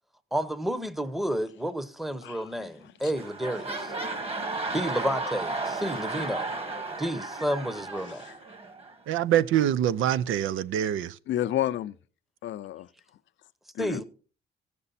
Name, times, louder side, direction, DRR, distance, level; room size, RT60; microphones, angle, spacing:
voice 1, 0.3-3.9 4.7-6.5 7.0-8.2 13.8-14.0, equal, ahead, 0.8 m, -31 dB
sound 1, 2.6-2.8 3.1-8.9 9.6-9.7, right 3 dB, 30° right, 1.6 m, -34 dB
voice 2, 9.1-11.1, right 11 dB, 85° right, 0.6 m, -25 dB
voice 3, 11.3-11.9 12.4-12.9 13.7-14.0, left 12 dB, 70° left, 0.6 m, -30 dB
15.5 x 6.8 x 4.1 m
cardioid pair, 90°, 20 cm